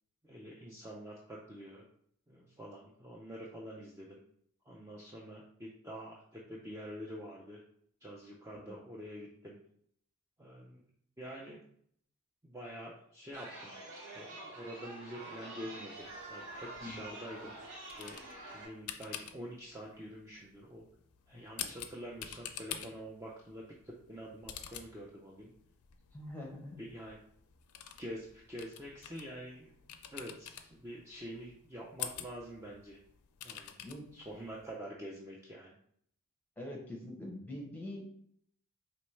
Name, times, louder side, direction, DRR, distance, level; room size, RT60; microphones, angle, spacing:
voice 1, 0.2-1.8 2.3-4.2 4.7-7.6 8.0-9.6 10.4-10.9 11.2-11.6 12.4-13.8 14.1-17.6 18.0-18.2 18.5-20.9 21.3-25.5 26.8-27.2 28.0-29.7 30.1-33.0 33.4-33.8 34.1-35.8, equal, 15° right, -3 dB, 0.4 m, -46 dB
Chatter, 13.3-18.7, right 2 dB, 75° right, 1.4 m, -47 dB
sound 1, 16.0-34.8, left 9 dB, 80° left, 0.4 m, -49 dB
voice 2, 26.1-26.8 33.8-34.1 36.6-38.2, left 1 dB, 10° left, -1 dB, 0.8 m, -44 dB
4.3 x 3.0 x 3.2 m, 0.66 s
head